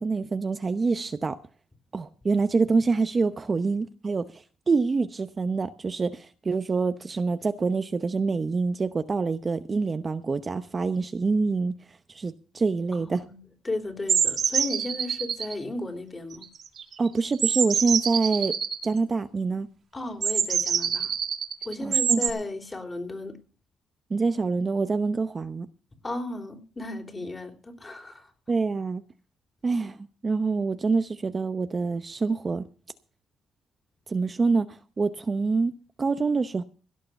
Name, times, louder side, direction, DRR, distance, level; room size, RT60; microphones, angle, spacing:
voice 1, 0.0-1.4 1.9-11.7 12.1-13.2 17.0-18.5 18.8-19.7 21.8-22.2 24.1-25.7 28.5-29.0 29.6-32.7 34.1-35.7 36.0-36.6, right 4 dB, 35° right, 0.8 m, -26 dB
voice 2, 12.9-13.4 13.6-16.5 19.9-21.1 21.6-23.4 26.0-28.3, left 2 dB, 25° left, 3.4 m, -34 dB
sound 1, 14.1-15.5 16.3-16.9 17.3-18.9 20.2-22.3, right 7 dB, 60° right, 1.7 m, -25 dB
17.0 x 6.6 x 7.1 m
cardioid pair, 90°, 0 cm